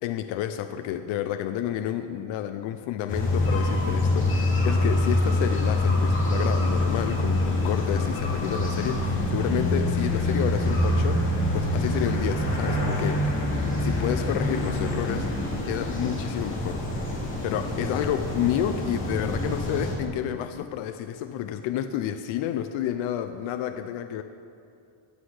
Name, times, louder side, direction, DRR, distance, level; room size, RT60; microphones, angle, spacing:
voice 1, 0.0-11.2 11.5-13.4 13.8-15.3 15.7-16.9 17.4-24.2, left 10 dB, 65° left, 8 dB, 0.7 m, -30 dB
sound 1, 3.1-19.9, left 1 dB, 25° left, 2.5 m, -25 dB
15.0 x 10.0 x 4.9 m, 2.5 s
cardioid pair, 175°, 50 cm